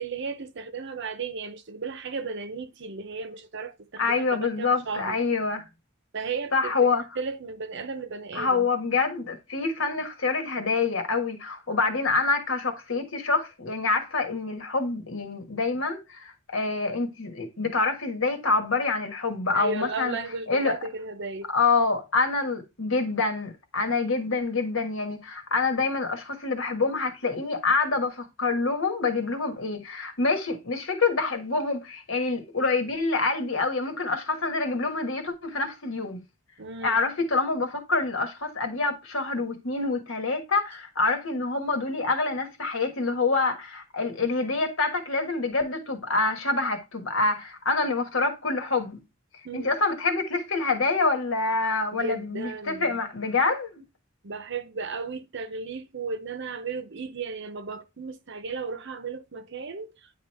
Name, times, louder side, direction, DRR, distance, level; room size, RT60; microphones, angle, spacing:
voice 1, 0.0-5.2 6.1-6.9 7.2-8.7 19.5-21.5 36.6-37.1 49.4-49.7 51.9-53.0 54.2-60.1, right 4 dB, 60° right, 0.8 m, -35 dB
voice 2, 4.0-5.6 6.5-7.0 8.3-20.2 20.5-20.8 21.5-36.2 36.8-49.0 49.5-53.8, left 3 dB, 70° left, 1.5 m, -26 dB
9.3 x 3.1 x 4.3 m
head